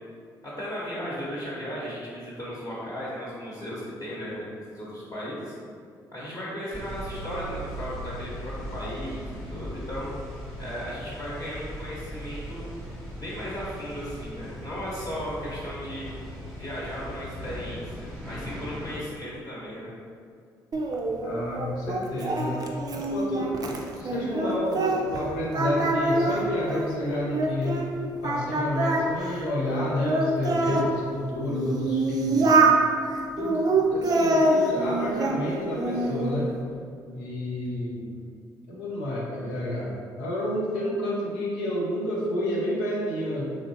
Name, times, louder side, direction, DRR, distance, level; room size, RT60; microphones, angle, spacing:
voice 1, 0.4-5.5 6.1-10.1 10.6-12.6 13.2-16.1 16.5-19.9, equal, 35° left, -8 dB, 0.9 m, -36 dB
sound 1, 6.7-19.0, equal, 5° left, 1.0 m, -39 dB
Singing, 20.7-25.2 25.5-27.9 28.2-30.9 31.5-32.8 33.4-35.4 35.8-36.4, right 2 dB, 40° right, 0.4 m, -25 dB
voice 2, 21.2-23.5 23.9-27.8 28.2-32.6 33.4-36.5 37.1-38.3 38.7-43.6, left 1 dB, 85° left, -4 dB, 0.6 m, -30 dB
3.0 x 2.5 x 2.7 m, 2.2 s
hypercardioid pair, 50°, 10 cm